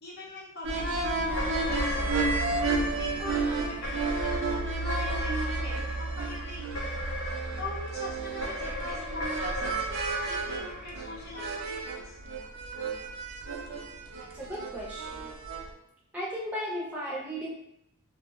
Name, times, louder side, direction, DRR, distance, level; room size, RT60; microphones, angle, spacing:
voice 1, 0.0-2.2 3.0-6.9 7.6-9.9 10.2-12.2, left 2 dB, 50° left, -4 dB, 0.6 m, -42 dB
sound 1, 0.6-15.7, right 3 dB, 60° right, 0.3 m, -32 dB
sound 2, 1.3-11.7, left 1 dB, 80° left, 0.7 m, -36 dB
voice 2, 14.2-15.2 16.1-17.5, equal, 5° right, -7 dB, 0.5 m, -35 dB
2.6 x 2.1 x 2.3 m, 0.75 s
head